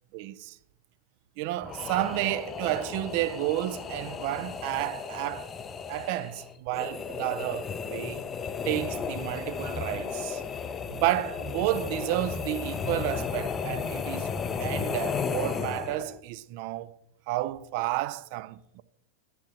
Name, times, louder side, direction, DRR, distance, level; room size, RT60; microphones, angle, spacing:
voice 1, 0.1-0.6 1.4-5.5 5.9-8.2 8.7-10.4 10.9-14.3 14.6-17.0 17.3-18.8, right 16 dB, 45° right, 0.4 m, -31 dB
sound 1, 1.6-16.2, left 6 dB, 20° left, 0.4 m, -34 dB
10.0 x 8.0 x 2.8 m
figure-of-eight pair, 90°, 0 cm